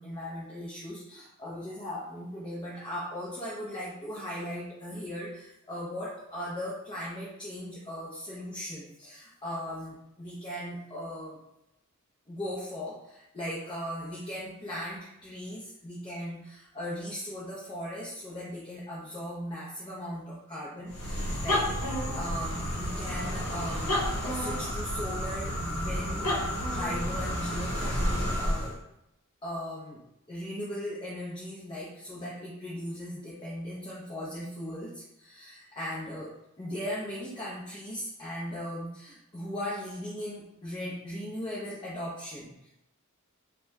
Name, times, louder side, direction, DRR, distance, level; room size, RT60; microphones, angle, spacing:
voice 1, 0.0-11.4 12.3-21.7 22.1-26.4 26.7-28.8 29.4-30.0 30.3-42.7, equal, 20° left, -7 dB, 0.5 m, -38 dB
sound 1, 20.9-28.8, equal, 80° left, 0.9 m, -31 dB
2.8 x 2.2 x 3.3 m, 0.87 s
head